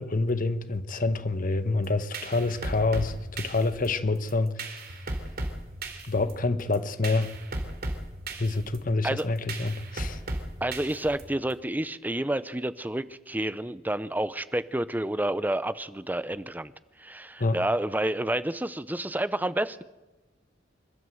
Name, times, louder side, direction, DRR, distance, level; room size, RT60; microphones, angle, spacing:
voice 1, 0.0-4.5 6.1-7.3 8.4-10.2 17.4-17.6, left 3 dB, 45° left, 1.1 m, -27 dB
sound 1, 1.8-11.5, right 2 dB, 55° right, 3.1 m, -36 dB
voice 2, 10.6-16.7 17.0-19.8, right 1 dB, 10° right, 0.7 m, -29 dB
27.0 x 13.0 x 7.8 m
head